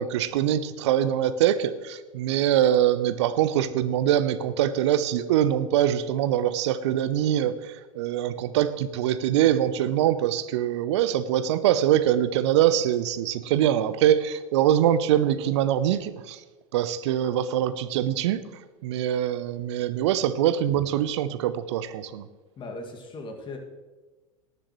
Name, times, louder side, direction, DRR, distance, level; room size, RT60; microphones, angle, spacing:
voice 1, 0.0-16.4 16.7-18.4 18.8-22.3, right 11 dB, 55° right, 14 dB, 0.8 m, -23 dB
voice 2, 22.6-23.6, left 2 dB, 30° left, 3 dB, 2.1 m, -38 dB
18.0 x 11.5 x 3.1 m, 1.2 s
figure-of-eight pair, 85°, 17 cm